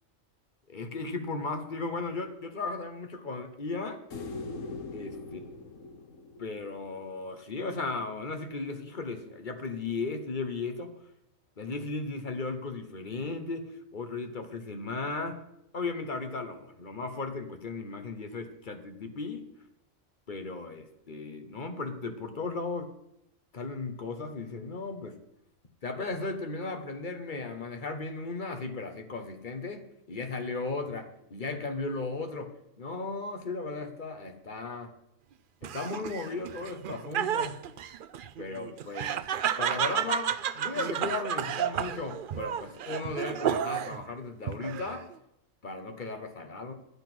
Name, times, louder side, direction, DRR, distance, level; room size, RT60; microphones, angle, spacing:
voice 1, 0.7-4.0 4.9-5.4 6.4-10.9 11.6-15.4 15.7-19.5 20.3-22.9 23.5-25.2 25.8-35.0 35.6-37.6 38.4-39.2 39.6-45.1 45.6-46.7, left 3 dB, 40° left, 7 dB, 1.2 m, -36 dB
sound 1, 4.1-7.4 10.0-10.1, left 3 dB, 70° left, 1.4 m, -41 dB
Laughter, 35.6-44.0 44.5-45.1, right 9 dB, 65° right, 0.5 m, -32 dB
11.5 x 8.2 x 6.1 m, 0.82 s
omnidirectional pair, 1.4 m